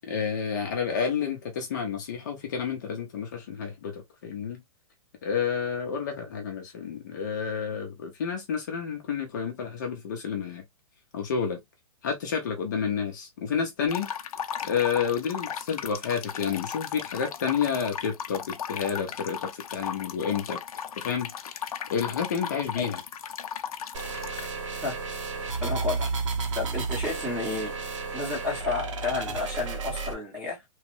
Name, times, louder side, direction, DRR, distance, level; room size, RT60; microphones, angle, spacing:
voice 1, 0.0-4.6 5.2-10.6 11.1-11.6 12.0-14.1 14.6-20.6 20.9-23.0, left 7 dB, 30° left, 0.6 m, -30 dB
sound 1, 13.9-24.5, left 8 dB, 75° left, 0.5 m, -36 dB
sound 2, 23.9-30.1, right 4 dB, 55° right, 0.8 m, -32 dB
voice 2, 25.6-26.1 26.5-27.7 28.1-30.6, left 3 dB, 5° right, 0.8 m, -31 dB
3.1 x 2.1 x 3.0 m
hypercardioid pair, 175°, 19 cm